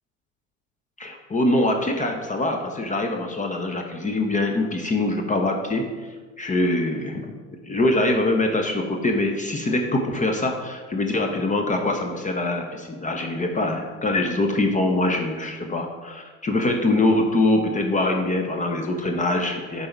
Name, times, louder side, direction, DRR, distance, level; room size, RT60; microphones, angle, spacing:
voice 1, 1.0-5.9 6.4-7.3 7.6-19.9, left 2 dB, 20° left, 3 dB, 0.9 m, -23 dB
10.0 x 4.1 x 4.5 m, 1.4 s
figure-of-eight pair, 70°, 39 cm